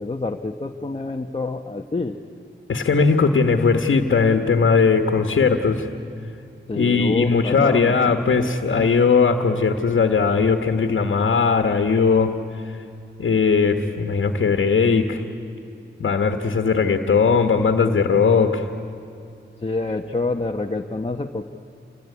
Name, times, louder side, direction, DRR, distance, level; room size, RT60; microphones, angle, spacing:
voice 1, 0.0-2.2 6.7-8.1 19.6-21.4, left 3 dB, 30° left, 2 dB, 1.1 m, -27 dB
voice 2, 2.7-5.9 6.7-12.3 13.2-15.2 16.0-18.7, left 5 dB, 80° left, 6 dB, 1.5 m, -19 dB
27.0 x 21.5 x 9.6 m, 2.6 s
wide cardioid pair, 70°, 20 cm